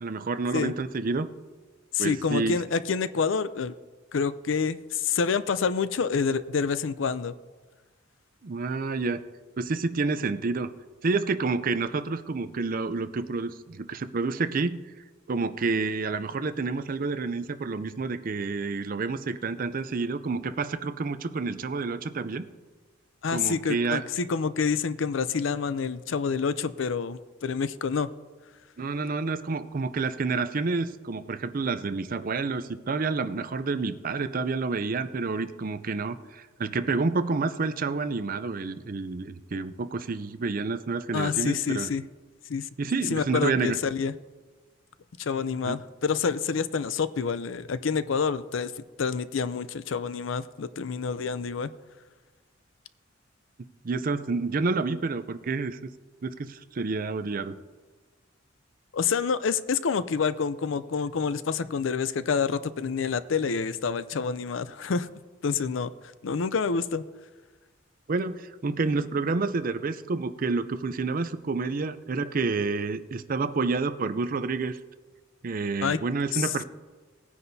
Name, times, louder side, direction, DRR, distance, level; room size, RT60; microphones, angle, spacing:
voice 1, 0.0-1.3 2.0-2.6 8.4-9.2 9.6-10.7 11.0-14.8 15.3-22.5 23.3-24.1 28.8-41.9 42.8-43.8 45.6-45.8 53.8-55.8 56.2-57.6 68.1-74.8 75.4-76.6, right 4 dB, 45° right, 12 dB, 0.5 m, -29 dB
voice 2, 1.9-3.8 4.1-7.3 23.2-28.1 41.1-42.0 42.5-42.7 43.1-44.1 45.2-48.7 49.0-51.7 58.9-65.1 65.4-65.9 66.2-67.0 75.8-76.0 76.3-76.5, left 5 dB, 80° left, 14 dB, 0.5 m, -27 dB
19.0 x 9.7 x 2.7 m, 1.3 s
head